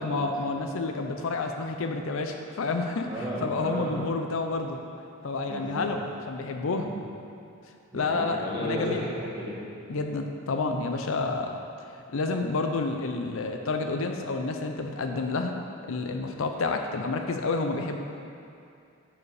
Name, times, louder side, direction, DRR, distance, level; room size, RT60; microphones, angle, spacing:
voice 1, 0.0-3.1 3.4-4.8 5.2-6.0 6.3-6.9 7.9-9.1 9.9-11.6 12.1-15.6 15.9-18.0, left 3 dB, 65° left, 4 dB, 0.6 m, -29 dB
voice 2, 3.1-4.0 4.5-4.6 5.4-5.9 6.7-6.9 7.9-10.0, equal, 20° right, -8 dB, 1.9 m, -34 dB
9.6 x 5.0 x 4.8 m, 2.5 s
head